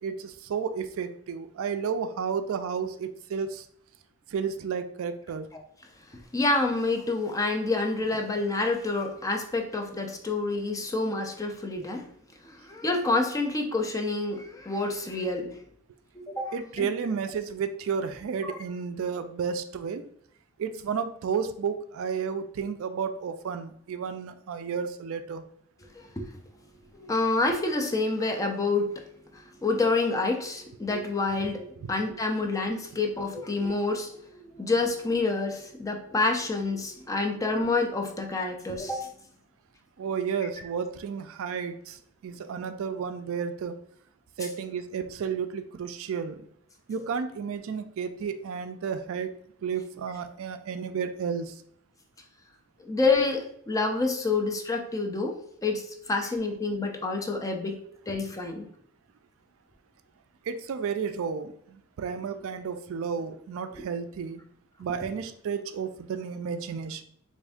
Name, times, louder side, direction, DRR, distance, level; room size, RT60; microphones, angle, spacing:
voice 1, 0.0-3.7 4.3-5.5 16.5-20.0 20.6-25.4 31.8-31.9 40.0-43.8 44.4-46.4 46.9-49.3 49.6-51.6 60.4-64.4 64.8-67.0, right 6 dB, 65° right, 10 dB, 0.3 m, -32 dB
voice 2, 6.3-12.1 12.4-15.6 16.2-16.9 18.4-18.6 25.9-26.3 27.0-28.9 29.3-39.1 52.8-57.7 58.1-58.7 63.7-63.8, left 3 dB, 15° left, 3 dB, 0.4 m, -28 dB
3.4 x 2.6 x 3.4 m, 0.67 s
head